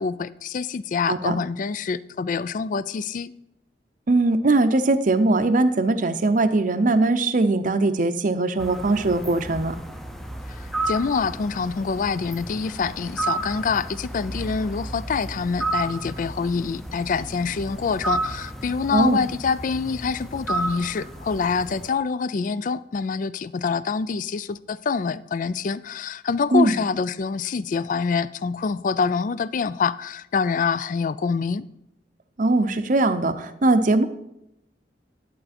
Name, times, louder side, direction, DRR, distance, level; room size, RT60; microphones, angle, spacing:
voice 1, 0.0-3.3 10.5-31.6, left 5 dB, 50° left, 17 dB, 0.3 m, -26 dB
voice 2, 4.1-9.8 18.9-19.2 26.5-26.8 32.4-34.0, right 2 dB, 50° right, 10 dB, 0.6 m, -20 dB
sound 1, 8.6-21.9, right 2 dB, ahead, 0.6 m, -32 dB
11.0 x 7.9 x 4.3 m, 0.84 s
head